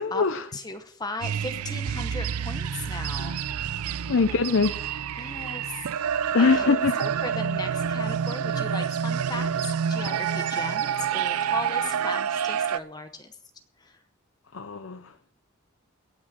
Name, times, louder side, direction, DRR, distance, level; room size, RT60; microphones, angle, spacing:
voice 1, 0.0-0.5 4.1-4.7 6.3-7.0 14.5-15.0, left 4 dB, 60° left, 9 dB, 0.6 m, -22 dB
voice 2, 0.5-3.4 5.2-6.1 6.4-13.4 13.8-14.0, left 3 dB, 20° left, 8 dB, 0.8 m, -37 dB
sound 1, 1.2-12.8, right 8 dB, 90° right, 0.4 m, -28 dB
17.0 x 6.2 x 7.4 m, 0.65 s
head